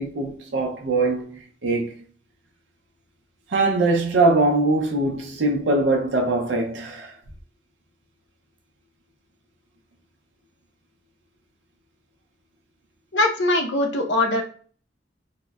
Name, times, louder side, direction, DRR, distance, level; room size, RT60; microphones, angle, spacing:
voice 1, 0.0-2.0 3.5-7.1, right 2 dB, 85° right, 0.5 m, -22 dB
voice 2, 13.1-14.4, left 2 dB, 90° left, 0.7 m, -21 dB
3.6 x 2.0 x 2.2 m
head